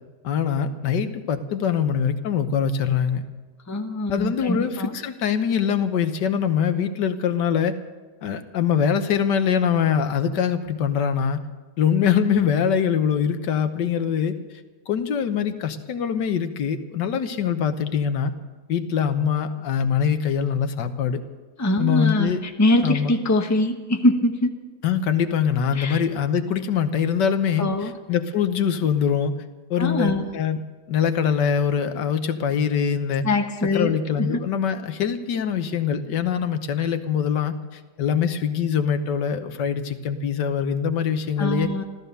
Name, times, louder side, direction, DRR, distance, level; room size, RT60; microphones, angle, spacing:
voice 1, 0.2-3.2 4.1-7.8 8.2-11.4 11.8-14.4 14.9-18.3 18.7-21.2 21.8-22.4 22.8-23.1 24.8-29.3 29.7-30.6 30.9-33.3 33.7-41.7, left 7 dB, 90° left, 8 dB, 1.6 m, -23 dB
voice 2, 3.7-4.9 21.6-24.5 25.7-26.0 27.6-28.0 29.8-30.2 33.2-34.4 41.4-41.8, left 1 dB, 10° left, 4 dB, 0.9 m, -23 dB
14.5 x 14.0 x 6.8 m, 1.3 s
omnidirectional pair, 1.8 m